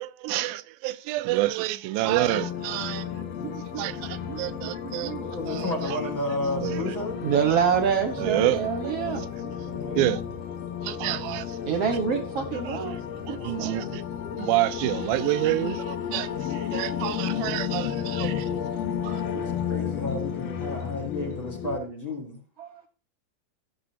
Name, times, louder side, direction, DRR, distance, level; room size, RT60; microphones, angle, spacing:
voice 1, 0.0-3.1 3.8-5.1 5.5-5.7 6.6-6.9 8.2-9.1 10.0-10.2 10.8-11.5 12.7-12.8 13.3-14.0 14.4-18.5 19.0-19.2, right 17 dB, 90° right, 2.4 m, -28 dB
voice 2, 1.4-1.8 2.8-2.9 3.7-3.8 4.5-4.7 5.1-7.2 9.6-10.2 13.3-14.0 17.9-18.7 19.7-22.4, left 1 dB, 45° left, 1.8 m, -34 dB
sound 1, 2.0-21.8, left 8 dB, 70° left, 1.6 m, -32 dB
voice 3, 3.4-5.3 7.2-9.9 11.6-13.0 13.3-13.7 18.0-18.2 19.2-19.8 22.6-22.9, right 7 dB, 55° right, 1.8 m, -28 dB
17.0 x 7.5 x 2.8 m
omnidirectional pair, 4.1 m